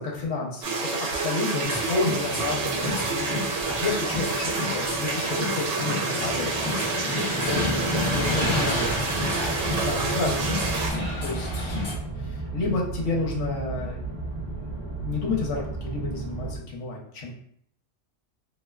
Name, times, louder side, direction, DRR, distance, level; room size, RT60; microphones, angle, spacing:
voice 1, 0.0-9.3 9.7-10.6 11.2-11.9 12.2-17.3, left 3 dB, 80° left, -1 dB, 1.0 m, -31 dB
sound 1, 0.6-10.9, right 4 dB, 70° right, 0.9 m, -28 dB
sound 2, 1.6-11.9, left 2 dB, 40° left, 0.4 m, -31 dB
sound 3, 7.9-16.6, right 3 dB, 30° right, 0.5 m, -33 dB
3.1 x 2.4 x 2.3 m, 0.66 s
omnidirectional pair, 1.3 m